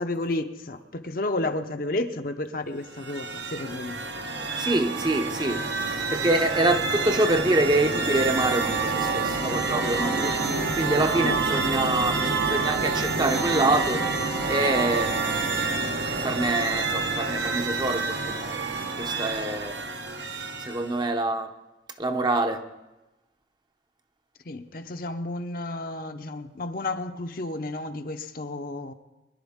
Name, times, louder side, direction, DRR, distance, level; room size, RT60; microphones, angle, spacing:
voice 1, 0.0-4.0 10.4-10.7 11.2-11.4 24.5-28.9, left 2 dB, 50° left, 7 dB, 0.7 m, -32 dB
sound 1, 2.8-21.0, right 3 dB, 75° right, 1.1 m, -28 dB
voice 2, 4.6-5.6 6.1-10.3 10.8-14.0 14.5-15.4 16.2-18.5 19.0-19.7 20.7-21.5 22.0-22.6, right 2 dB, 25° right, 6 dB, 0.7 m, -25 dB
22.5 x 11.0 x 3.6 m, 1.0 s
head